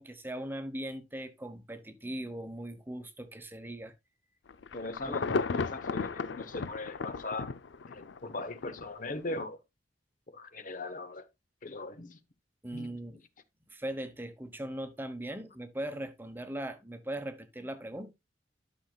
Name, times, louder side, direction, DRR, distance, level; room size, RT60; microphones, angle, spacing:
voice 1, 0.0-3.9 5.1-5.4 12.6-13.2 13.7-18.1, right 1 dB, 10° right, 1.0 m, -39 dB
Insect / Thunder / Rain, 4.5-8.9 9.3-9.4, left 4 dB, 90° left, 0.5 m, -34 dB
voice 2, 4.7-7.5 7.9-9.6 10.3-11.3 11.6-12.2 12.7-12.9, left 2 dB, 50° left, 0.9 m, -40 dB
12.0 x 6.3 x 2.3 m
head